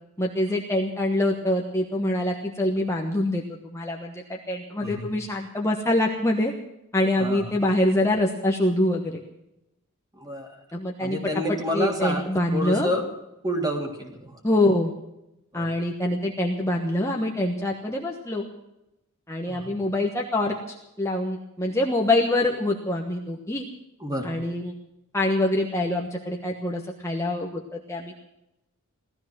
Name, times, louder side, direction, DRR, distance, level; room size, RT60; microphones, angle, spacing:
voice 1, 0.2-3.4 3.7-6.5 6.9-9.2 10.7-11.2 11.5-12.9 14.4-14.9 15.5-18.4 19.3-23.6 24.2-24.7 25.1-28.2, left 1 dB, 15° left, 0 dB, 1.2 m, -25 dB
voice 2, 7.2-7.5 10.2-10.5 11.0-12.2 12.5-13.1 13.4-14.3 15.5-15.7 19.5-19.7 24.0-24.3, equal, 15° right, 2 dB, 2.9 m, -29 dB
17.5 x 13.5 x 6.1 m, 0.89 s
head